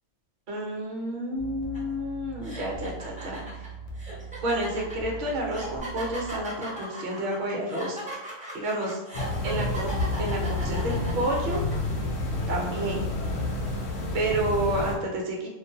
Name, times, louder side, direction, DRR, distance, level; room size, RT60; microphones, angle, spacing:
voice 1, 0.5-3.4 4.4-8.0 8.5-9.0 9.4-9.9 10.2-11.6 12.5-13.1 14.1-15.5, right 1 dB, 50° right, -1 dB, 0.6 m, -30 dB
sound 1, 1.4-6.4, right 4 dB, 55° left, 0.5 m, -41 dB
sound 2, 1.7-1.9 2.4-11.7, right 1 dB, 10° right, 0.3 m, -38 dB
sound 3, 9.1-15.0, left 2 dB, 80° left, 0.9 m, -29 dB
2.5 x 2.1 x 2.7 m, 1.0 s
omnidirectional pair, 1.4 m